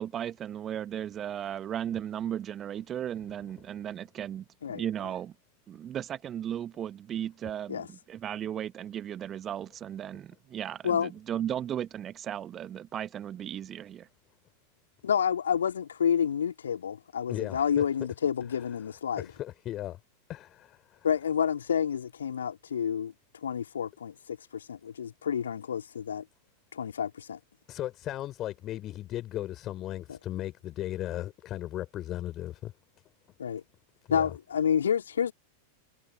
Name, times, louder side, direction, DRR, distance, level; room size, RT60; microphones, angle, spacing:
voice 1, 0.0-5.3 5.7-14.1, right 10 dB, 25° right, 1.3 m, -36 dB
voice 2, 15.0-19.3 21.0-23.1 23.4-26.2 26.7-27.4 30.1-30.2 33.4-33.6 34.1-35.3, left 8 dB, 70° left, 3.6 m, -29 dB
voice 3, 17.3-17.8 19.2-20.0 20.3-21.1 27.7-32.7 34.1-34.3, left 13 dB, 35° left, 5.3 m, -36 dB
figure-of-eight pair, 90°, 0 cm